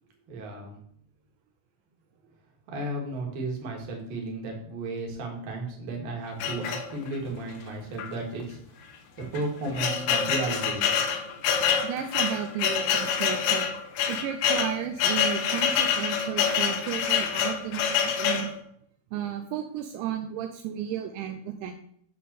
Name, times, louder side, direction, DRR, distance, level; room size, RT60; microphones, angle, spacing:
voice 1, 0.3-0.8 2.7-8.9 9.2-10.8, right 2 dB, 55° right, 0 dB, 3.2 m, -34 dB
sound 1, 6.4-7.3 8.0-8.1 8.4-8.5 9.2-18.5, left 7 dB, 70° left, 2.7 m, -26 dB
voice 2, 11.8-13.7 14.1-18.5 19.1-21.7, right 9 dB, 85° right, 5 dB, 2.8 m, -33 dB
9.3 x 3.8 x 6.7 m, 0.66 s
omnidirectional pair, 5.4 m